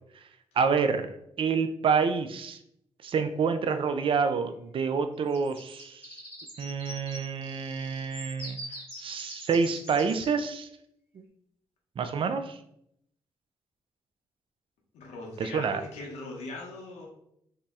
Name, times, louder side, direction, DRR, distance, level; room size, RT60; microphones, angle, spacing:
voice 1, 0.6-2.6 3.0-6.0 6.6-8.6 9.0-10.7 12.0-12.6 15.4-15.8, right 5 dB, 50° right, 9 dB, 0.4 m, -28 dB
sound 1, 5.3-10.3, equal, 20° right, 1.3 m, -44 dB
voice 2, 14.9-17.1, left 2 dB, 90° left, -1 dB, 0.8 m, -40 dB
2.7 x 2.0 x 3.4 m, 0.75 s
supercardioid pair, 50°, 11 cm